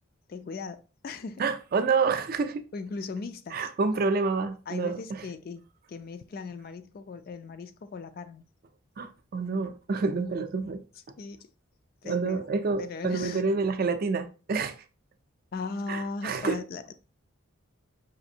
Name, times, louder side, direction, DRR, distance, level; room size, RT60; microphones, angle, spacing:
voice 1, 0.3-1.5 2.7-3.7 4.7-8.4 11.2-11.5 12.0-12.4 12.8-13.4 15.5-16.9, left 4 dB, 45° left, 0.3 m, -38 dB
voice 2, 1.4-2.7 3.5-5.2 9.0-10.8 12.0-14.8 15.9-16.6, right 4 dB, 45° right, 0.4 m, -28 dB
5.0 x 2.6 x 2.7 m
head